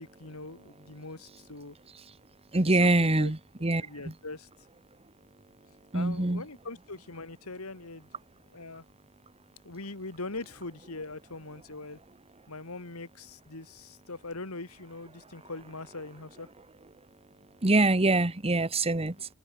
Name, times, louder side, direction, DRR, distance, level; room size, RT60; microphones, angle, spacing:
voice 1, 0.0-1.8 2.6-3.3 3.8-4.5 5.9-8.1 8.5-8.8 9.6-12.0 12.5-16.5 19.2-19.3, left 3 dB, 70° left, 2.5 m, -42 dB
voice 2, 2.5-3.9 5.9-6.4 17.6-19.1, right 2 dB, 25° right, 1.4 m, -24 dB
open air
head